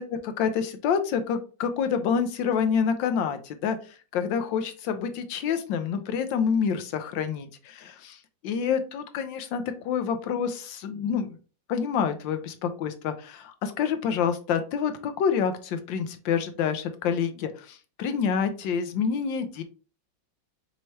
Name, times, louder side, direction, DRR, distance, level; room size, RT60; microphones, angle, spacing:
voice 1, 0.4-3.8 4.1-8.2 8.4-11.4 11.7-19.6, left 7 dB, 80° left, 9 dB, 1.4 m, -27 dB
5.7 x 3.2 x 2.8 m, 0.36 s
omnidirectional pair, 2.0 m